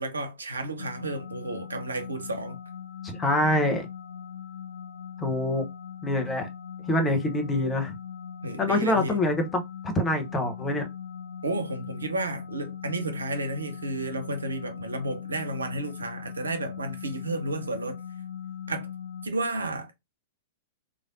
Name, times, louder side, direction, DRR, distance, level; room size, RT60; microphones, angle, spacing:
voice 1, 0.0-2.6 8.4-9.2 11.4-18.0 18.7-18.9 19.2-19.9, right 2 dB, 75° right, 0.7 m, -32 dB
sound 1, 0.8-19.3, left 8 dB, 60° left, 0.5 m, -40 dB
voice 2, 3.0-3.9 5.2-5.7 6.0-6.5 6.9-7.9 8.6-9.6 9.9-10.9, left 1 dB, 15° left, 0.9 m, -25 dB
3.2 x 2.5 x 2.6 m
figure-of-eight pair, 100°, 0 cm